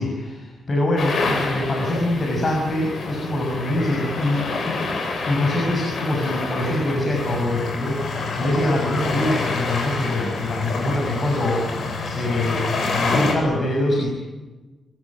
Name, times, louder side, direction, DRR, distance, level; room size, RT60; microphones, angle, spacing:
voice 1, 0.0-4.7 5.2-8.0 8.4-11.7 12.0-14.1, left 1 dB, 35° left, 0 dB, 6.9 m, -24 dB
sound 1, 1.0-13.3, left 3 dB, 60° left, 7.9 m, -27 dB
25.5 x 23.5 x 8.9 m, 1.2 s
wide cardioid pair, 135°, 0 cm